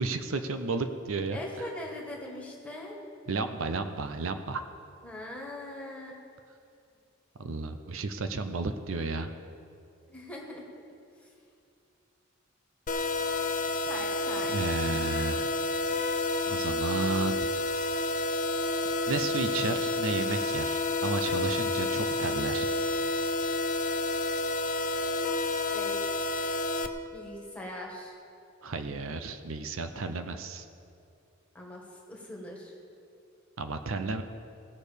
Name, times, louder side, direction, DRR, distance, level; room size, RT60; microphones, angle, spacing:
voice 1, 0.0-1.4 3.3-4.6 7.4-9.3 14.5-15.5 16.4-17.5 19.1-22.8 28.6-30.7 33.6-34.2, right 3 dB, 70° right, 8 dB, 0.6 m, -32 dB
voice 2, 1.3-2.9 5.0-6.2 10.1-10.6 13.9-14.6 25.7-26.0 27.1-28.2 31.5-32.8, left 1 dB, 5° left, -2 dB, 1.7 m, -41 dB
sound 1, 12.9-26.9, left 2 dB, 40° left, 0.5 m, -29 dB
18.0 x 6.4 x 5.1 m, 2.5 s
head